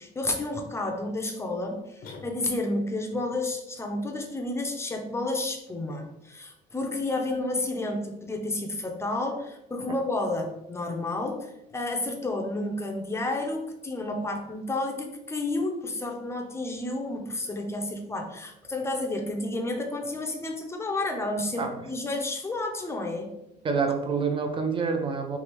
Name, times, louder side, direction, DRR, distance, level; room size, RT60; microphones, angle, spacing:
voice 1, 0.0-23.3, left 2 dB, 15° left, 3 dB, 0.5 m, -31 dB
sound 1, 2.0-2.9, left 3 dB, 65° left, 0.6 m, -45 dB
voice 2, 23.6-25.4, right 5 dB, 30° right, 5 dB, 0.5 m, -27 dB
3.3 x 2.4 x 3.0 m, 0.87 s
cardioid pair, 110°, 17 cm